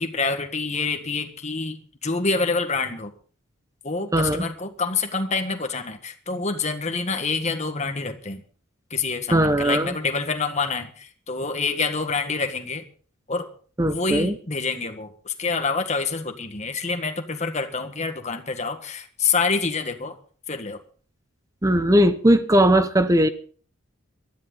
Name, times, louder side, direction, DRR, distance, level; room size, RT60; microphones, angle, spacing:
voice 1, 0.0-3.1 3.8-8.4 8.9-12.8 13.3-13.5 13.9-20.2 20.5-20.8, left 4 dB, 30° left, 6 dB, 1.6 m, -27 dB
voice 2, 4.1-4.5 9.3-10.0 13.8-14.4 21.6-23.3, right 1 dB, 15° right, 11 dB, 0.7 m, -19 dB
19.5 x 13.0 x 4.0 m, 0.43 s
head